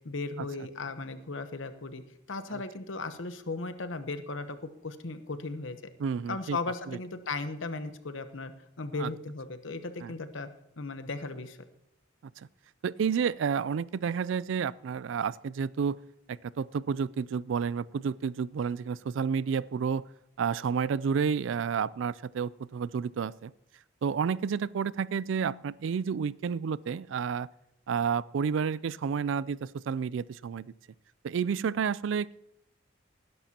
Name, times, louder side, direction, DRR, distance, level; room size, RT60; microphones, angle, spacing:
voice 1, 0.0-2.0 2.3-4.6 4.8-5.8 6.3-8.5 8.8-10.5 10.8-11.6, left 3 dB, 80° left, 10 dB, 0.9 m, -36 dB
voice 2, 6.0-6.6 6.9-7.0 9.0-9.1 10.0-10.1 12.4-12.5 12.8-16.0 16.3-20.0 20.4-23.5 24.0-27.5 27.9-30.6 31.2-32.4, right 6 dB, 75° right, 21 dB, 0.3 m, -30 dB
19.0 x 11.0 x 2.9 m, 0.85 s
head